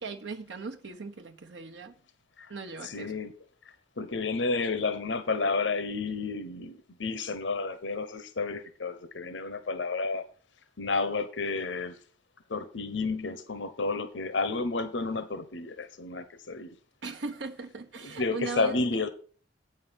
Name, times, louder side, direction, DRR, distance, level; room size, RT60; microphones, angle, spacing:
voice 1, 0.0-1.9 2.5-3.1 17.0-18.8, right 3 dB, 75° right, 0.8 m, -38 dB
voice 2, 2.8-3.3 3.6-10.3 10.8-12.0 12.5-16.7 18.0-19.1, left 3 dB, 80° left, 1.0 m, -31 dB
8.8 x 5.6 x 7.2 m
head